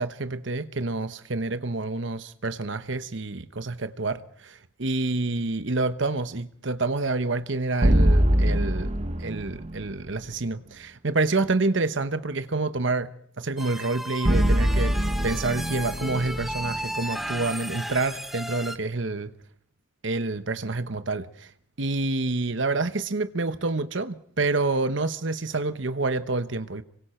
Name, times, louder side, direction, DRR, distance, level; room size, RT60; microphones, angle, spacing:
voice 1, 0.0-8.9 9.2-13.1 13.4-19.3 20.0-21.5 21.8-26.8, right 3 dB, 70° right, 1.0 m, -28 dB
sound 1, 7.8-10.0 14.2-17.5, equal, 30° right, 1.1 m, -23 dB
sound 2, 13.6-18.8, equal, ahead, 1.0 m, -35 dB
26.5 x 23.5 x 4.5 m
head